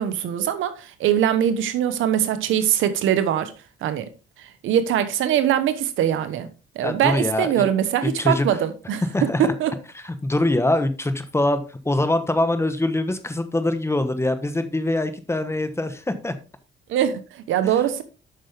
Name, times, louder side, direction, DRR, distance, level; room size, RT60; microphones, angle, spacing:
voice 1, 0.0-3.5 3.8-4.1 4.4-6.5 6.7-9.7 16.9-18.0, right 10 dB, 85° right, 1.1 m, -22 dB
voice 2, 6.8-7.7 8.0-8.5 9.1-9.5 10.0-16.3 17.6-17.7, left 1 dB, 15° left, 1.1 m, -23 dB
8.0 x 6.4 x 3.4 m
cardioid pair, 90°, 20 cm